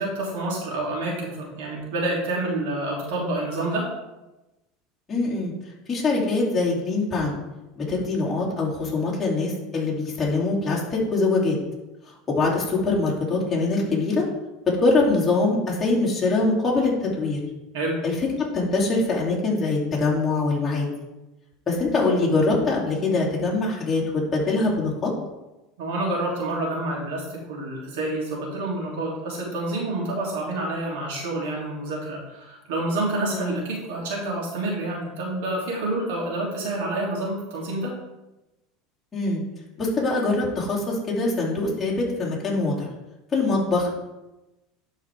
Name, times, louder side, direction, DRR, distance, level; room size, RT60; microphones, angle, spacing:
voice 1, 0.0-3.9 17.7-18.0 25.8-37.9, right 2 dB, 80° right, -3 dB, 2.9 m, -28 dB
voice 2, 5.1-5.5 5.9-7.4 7.8-11.6 12.3-14.3 14.7-17.4 18.0-20.9 21.7-25.1 33.3-33.6 39.1-39.4 39.8-42.9 43.3-43.9, left 3 dB, 20° left, -5 dB, 2.8 m, -23 dB
11.5 x 4.7 x 3.5 m, 1.0 s
supercardioid pair, 120°, 0 cm